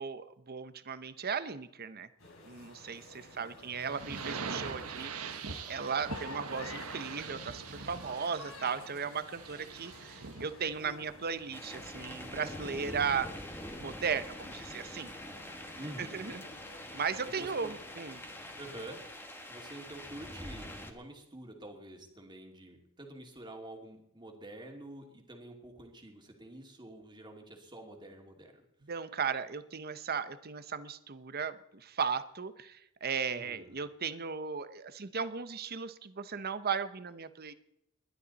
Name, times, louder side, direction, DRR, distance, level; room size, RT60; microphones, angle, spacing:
voice 1, 0.0-2.1 2.4-5.4 5.7-13.3 13.8-15.1 16.0-16.4 16.9-18.2 28.9-37.5, right 6 dB, 45° right, 12 dB, 0.9 m, -36 dB
sound 1, 2.2-19.1, left 3 dB, 70° left, 3.8 m, -53 dB
voice 2, 3.3-5.1 15.8-16.4 17.2-17.8 18.6-19.0 19.5-28.6 33.3-33.8, right 1 dB, 20° right, 2 dB, 2.5 m, -48 dB
sound 2, 3.9-10.6, right 5 dB, 85° right, 1.3 m, -42 dB
sound 3, 11.5-20.9, left 1 dB, 10° left, 1.7 m, -45 dB
20.5 x 11.5 x 4.2 m, 0.78 s
head